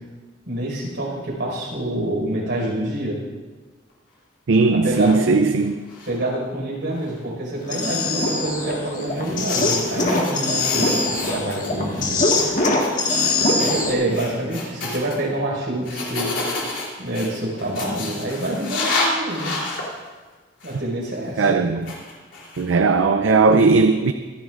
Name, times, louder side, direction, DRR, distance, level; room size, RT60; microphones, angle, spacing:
voice 1, 0.5-3.2 4.7-5.4 6.1-12.2 13.5-16.3 17.0-19.5 20.6-21.6, right 1 dB, 65° right, -3 dB, 5.1 m, -27 dB
voice 2, 4.5-5.8 21.4-21.9 22.6-24.1, right 4 dB, 80° right, 8 dB, 0.5 m, -17 dB
sound 1, 4.9-5.2 5.6-6.3 7.0-7.2 8.1-8.3 9.1-11.7 11.9-12.5 12.7-12.9 13.2-13.3 13.6-15.2 15.8-19.9 20.6-20.8 21.8-22.8, left 3 dB, 70° left, 3.3 m, -30 dB
sound 2, 7.6-13.9, left 2 dB, 40° left, 1.7 m, -22 dB
25.0 x 11.0 x 2.5 m, 1.3 s
head